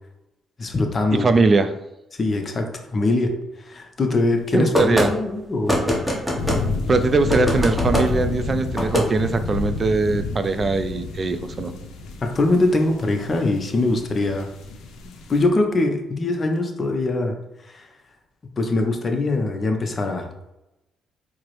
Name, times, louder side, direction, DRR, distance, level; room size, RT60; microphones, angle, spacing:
voice 1, 0.6-1.3 2.2-5.9 12.2-14.5 15.3-17.4 17.6-17.9 18.6-20.3, left 2 dB, 40° left, 4 dB, 0.6 m, -22 dB
voice 2, 1.1-1.7 4.5-5.1 6.9-11.7, right 3 dB, 35° right, 9 dB, 0.3 m, -21 dB
sound 1, 4.7-5.1 5.7-6.6 7.3-8.1 8.7-9.1, equal, ahead, 0.9 m, -21 dB
sound 2, 6.4-15.4, left 3 dB, 85° left, 0.5 m, -29 dB
4.5 x 2.0 x 3.0 m, 0.92 s
cardioid pair, 90°, 0 cm